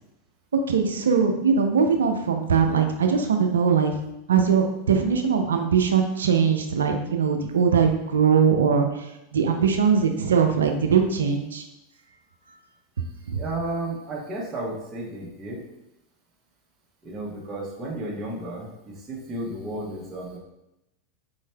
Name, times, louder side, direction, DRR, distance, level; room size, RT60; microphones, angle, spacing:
voice 1, 0.7-4.0 4.3-9.1 9.3-11.6 13.3-13.4, right 6 dB, 85° right, 4 dB, 0.4 m, -21 dB
voice 2, 13.3-15.7 17.0-20.4, right 1 dB, 25° right, -5 dB, 1.0 m, -33 dB
4.1 x 3.1 x 2.2 m, 0.89 s
hypercardioid pair, 100°, 0 cm